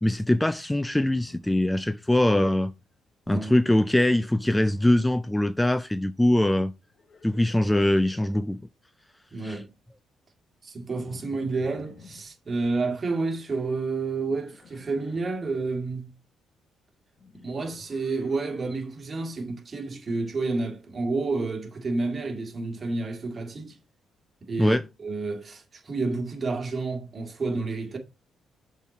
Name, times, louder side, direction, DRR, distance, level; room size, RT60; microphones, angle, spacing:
voice 1, 0.0-2.7 3.3-6.7 7.2-8.6 9.4-9.6 24.6-24.8, left 1 dB, 10° left, 0.4 m, -22 dB
Livestock farm animals working animals, 0.9-2.2 2.5-3.0 4.3-5.3 6.9-8.6 10.9-12.3 14.3-15.4 17.2-18.9, left 4 dB, 55° left, 1.4 m, -52 dB
voice 2, 9.3-9.7 10.6-16.1 17.3-23.8 24.4-28.0, right 3 dB, 35° right, 2.1 m, -30 dB
6.9 x 4.6 x 4.2 m
cardioid pair, 90°, 0 cm